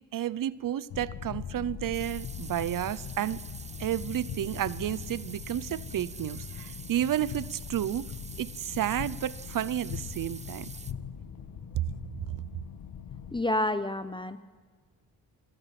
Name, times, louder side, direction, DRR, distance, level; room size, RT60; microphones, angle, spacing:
voice 1, 0.1-3.4 3.8-8.1 8.4-10.7, right 11 dB, 70° right, 0.7 m, -31 dB
sound 1, 0.9-13.4, left 8 dB, 75° left, 1.7 m, -41 dB
sound 2, 1.9-10.9, right 4 dB, 20° right, 0.7 m, -46 dB
voice 2, 13.3-14.4, left 1 dB, 15° left, 1.0 m, -29 dB
27.5 x 22.5 x 6.0 m
cardioid pair, 100°, 34 cm